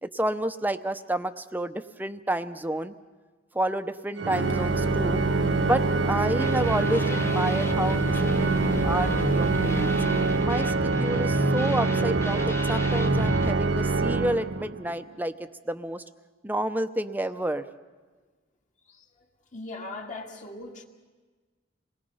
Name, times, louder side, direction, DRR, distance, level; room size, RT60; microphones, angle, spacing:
voice 1, 0.0-2.9 3.5-5.2 5.6-8.1 8.4-9.9 10.4-16.0 16.4-17.7, right 1 dB, 10° right, 9 dB, 0.7 m, -30 dB
Organ, 4.2-14.9, right 3 dB, 70° right, 0.6 m, -25 dB
sound 1, 4.3-10.5, equal, 90° left, 0.9 m, -37 dB
sound 2, 6.4-13.5, left 1 dB, 15° left, 0.9 m, -34 dB
voice 2, 19.5-20.8, left 2 dB, 45° left, 1 dB, 2.1 m, -39 dB
28.5 x 20.5 x 5.6 m, 1.4 s
head